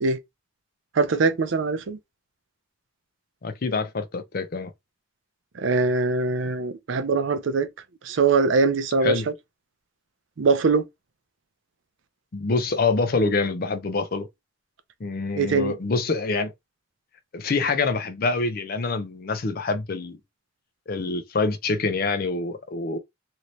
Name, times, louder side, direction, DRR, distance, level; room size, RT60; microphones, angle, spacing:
voice 1, 1.0-2.0 5.6-7.7 8.1-9.2 10.4-10.8 15.4-15.7, right 4 dB, 70° right, 0.5 m, -22 dB
voice 2, 3.4-4.7 9.0-9.3 12.3-14.3 15.0-16.5 17.3-20.2 20.9-23.0, left 3 dB, 50° left, 0.5 m, -26 dB
2.8 x 2.6 x 3.1 m
head